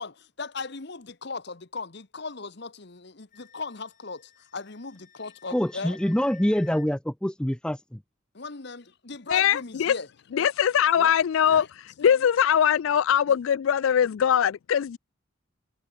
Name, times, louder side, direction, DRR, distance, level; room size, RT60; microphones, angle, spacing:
voice 1, 0.0-6.0 8.3-10.1 10.4-10.5 11.0-11.1 11.5-11.7 12.0-12.3 13.3-13.4, left 4 dB, 55° left, 1.1 m, -38 dB
Wind instrument woodwind instrument, 3.3-6.9, left 9 dB, 35° left, 5.9 m, -54 dB
voice 2, 5.5-8.0, equal, 5° left, 0.4 m, -25 dB
voice 3, 9.3-9.9 10.3-11.7 12.0-15.0, left 9 dB, 70° left, 0.3 m, -21 dB
head